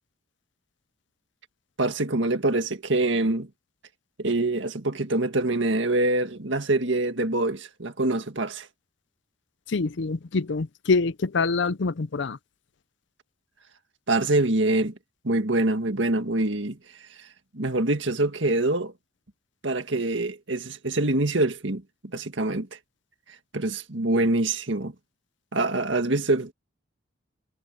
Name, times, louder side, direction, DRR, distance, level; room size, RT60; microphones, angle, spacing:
voice 1, 1.8-3.5 4.2-8.7 14.1-14.9 15.2-16.8 17.2-17.3 17.5-18.9 19.6-21.8 22.1-22.7 23.5-24.9 25.5-26.5, right 2 dB, 65° right, 1.9 m, -25 dB
voice 2, 9.7-12.4, left 4 dB, 65° left, 0.6 m, -25 dB
head